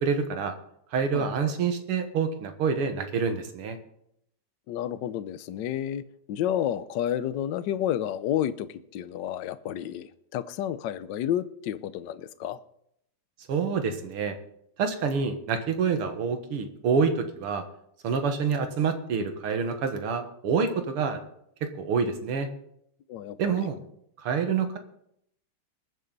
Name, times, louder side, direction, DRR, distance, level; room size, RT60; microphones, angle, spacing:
voice 1, 0.0-0.5 0.9-3.8 13.5-14.4 14.8-17.6 18.0-21.2 21.6-22.5 23.4-23.8 24.2-24.8, right 5 dB, 80° right, 2.3 m, -27 dB
voice 2, 1.1-1.5 4.7-6.0 6.3-12.6 23.1-23.7, left 11 dB, 65° left, 1.2 m, -31 dB
21.5 x 7.8 x 4.0 m
omnidirectional pair, 2.4 m